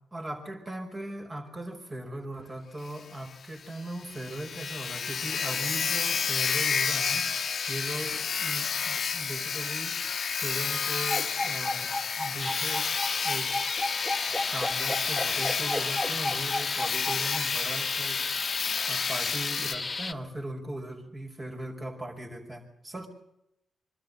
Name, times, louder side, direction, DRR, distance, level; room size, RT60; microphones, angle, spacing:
voice 1, 0.1-11.9 12.2-13.0 13.2-13.5 14.3-23.1, right 1 dB, 35° right, 2 dB, 5.3 m, -39 dB
Sawing, 2.9-3.0 3.3-3.4 3.8-19.7, left 6 dB, 60° left, 1.2 m, -30 dB
sound 1, 11.1-17.4, left 2 dB, 5° left, 2.2 m, -32 dB
sound 2, 12.4-20.1, left 3 dB, 35° left, 1.0 m, -34 dB
23.5 x 13.0 x 8.7 m, 0.80 s
supercardioid pair, 50°, 0 cm